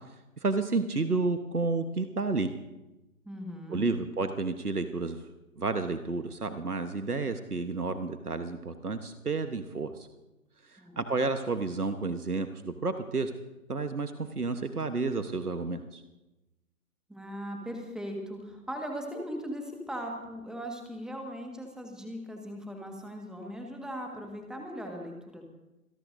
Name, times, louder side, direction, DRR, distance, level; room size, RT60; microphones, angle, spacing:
voice 1, 0.1-2.5 3.7-5.3 5.6-10.1 10.6-13.3 13.7-16.0, right 3 dB, 85° right, 8 dB, 1.3 m, -31 dB
voice 2, 3.2-3.9 10.8-11.2 17.1-25.5, equal, ahead, 1 dB, 1.6 m, -39 dB
27.0 x 17.5 x 2.7 m, 1.0 s
figure-of-eight pair, 135°, 44 cm